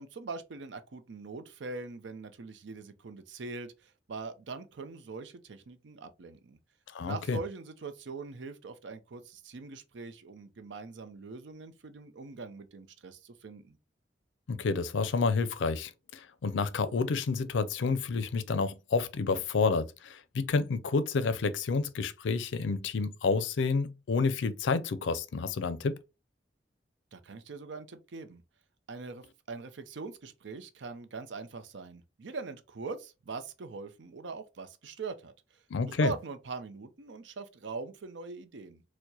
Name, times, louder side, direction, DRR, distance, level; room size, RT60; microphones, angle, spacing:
voice 1, 0.0-6.6 7.0-13.8 27.1-28.4 28.9-38.8, right 4 dB, 75° right, 0.5 m, -42 dB
voice 2, 6.9-7.4 14.5-26.0 35.7-36.1, left 4 dB, 80° left, 0.4 m, -29 dB
4.5 x 2.1 x 2.7 m
head